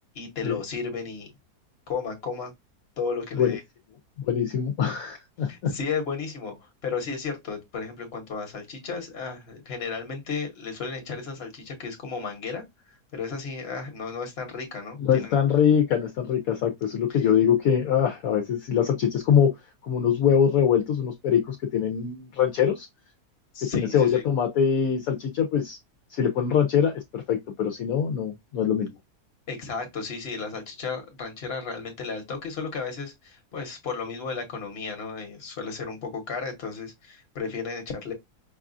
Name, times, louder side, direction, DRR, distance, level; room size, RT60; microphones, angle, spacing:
voice 1, 0.1-1.3 1.9-2.5 3.0-3.6 5.5-6.5 6.8-12.6 13.1-15.4 23.5-24.2 29.5-38.1, left 5 dB, 45° left, 1.2 m, -33 dB
voice 2, 4.2-5.5 15.0-19.6 19.8-22.9 23.7-25.8 26.1-28.9, left 8 dB, 70° left, 1.0 m, -23 dB
5.4 x 2.4 x 2.5 m
omnidirectional pair, 1.7 m